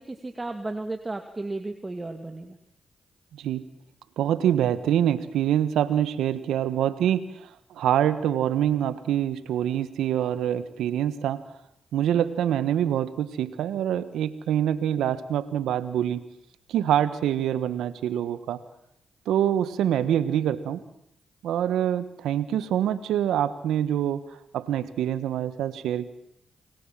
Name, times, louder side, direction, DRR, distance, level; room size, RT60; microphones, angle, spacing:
voice 1, 0.0-2.6, right 2 dB, 25° right, 5 dB, 2.4 m, -34 dB
voice 2, 4.2-11.5 11.9-16.3 16.7-18.6 19.3-20.8 21.4-24.2 24.5-26.1, right 10 dB, 85° right, 13 dB, 1.4 m, -25 dB
30.0 x 21.0 x 7.7 m, 0.77 s
supercardioid pair, 50°, 0 cm